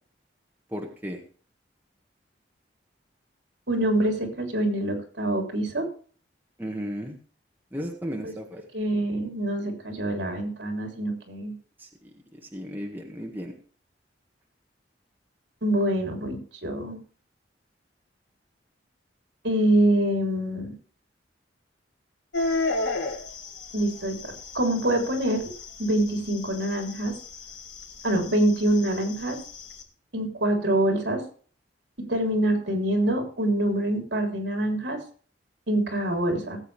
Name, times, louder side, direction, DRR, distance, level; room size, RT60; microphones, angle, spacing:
voice 1, 0.7-1.2 6.6-7.2 7.7-8.6 11.8-13.5, equal, 10° right, 1 dB, 1.8 m, -35 dB
voice 2, 3.7-5.8 8.2-8.3 8.7-11.5 15.6-17.0 19.4-20.7 23.7-25.4 25.8-27.1 28.0-29.4 30.1-31.2 32.1-35.0 35.7-36.6, right 1 dB, 70° right, 3 dB, 3.6 m, -25 dB
sound 1, 22.3-29.8, left 3 dB, 80° left, 2.6 m, -34 dB
18.0 x 8.2 x 3.4 m, 0.43 s
head